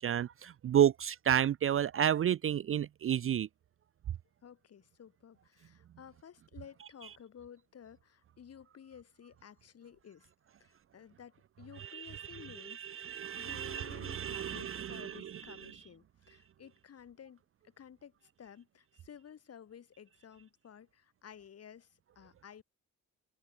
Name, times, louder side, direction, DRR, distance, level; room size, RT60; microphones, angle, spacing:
voice 1, 0.0-3.5 11.8-12.4 12.6-15.3, right 10 dB, 45° right, 0.5 m, -31 dB
voice 2, 4.4-10.3 10.6-18.1 18.4-22.6, left 8 dB, 50° left, 2.7 m, -54 dB
open air
cardioid pair, 135°, 31 cm